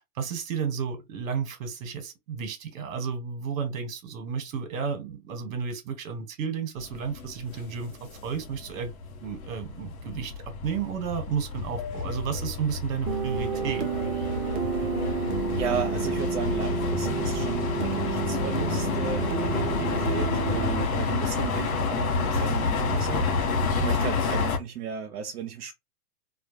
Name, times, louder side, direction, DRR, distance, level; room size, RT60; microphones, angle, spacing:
voice 1, 0.1-7.9 8.2-8.9 9.2-13.9, right 6 dB, 60° right, 1.1 m, -32 dB
sound 1, 6.8-24.6, left 4 dB, 70° left, 0.8 m, -29 dB
sound 2, 13.1-20.9, right 6 dB, 30° right, 0.4 m, -30 dB
voice 2, 15.5-25.7, right 8 dB, 80° right, 0.6 m, -35 dB
2.2 x 2.2 x 2.9 m
hypercardioid pair, 125°, 45 cm